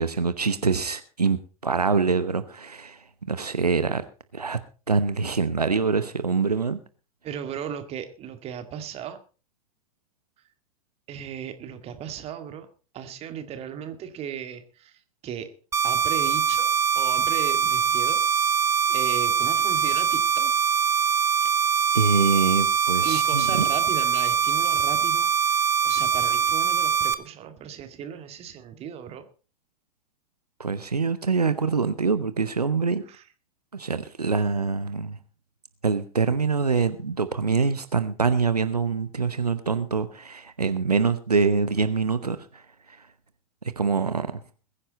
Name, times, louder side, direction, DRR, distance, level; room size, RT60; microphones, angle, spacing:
voice 1, 0.0-4.0 4.3-4.6 4.9-6.8 21.9-23.7 30.6-33.0 33.7-35.2 35.8-42.6 42.9-43.1 43.8-44.3, right 5 dB, 85° right, 0.9 m, -25 dB
voice 2, 7.2-9.2 11.1-12.7 12.9-14.9 15.2-15.5 15.8-18.2 18.9-20.5 23.0-29.3 33.1-33.2, right 8 dB, 30° right, 2.0 m, -36 dB
sound 1, 15.7-27.1, right 7 dB, 15° right, 1.0 m, -23 dB
21.5 x 10.0 x 4.1 m
figure-of-eight pair, 90°, 20 cm